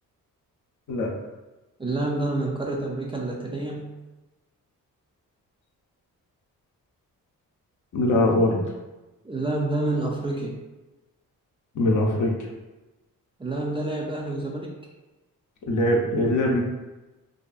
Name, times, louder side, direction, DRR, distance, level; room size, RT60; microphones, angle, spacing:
voice 1, 1.8-3.9 9.2-10.6 13.4-14.7, right 2 dB, 15° right, -2 dB, 0.3 m, -28 dB
voice 2, 7.9-8.6 11.7-12.3 15.7-16.6, left 1 dB, 60° left, 0 dB, 0.6 m, -21 dB
2.6 x 2.5 x 2.3 m, 1.1 s
cardioid pair, 85°, 35 cm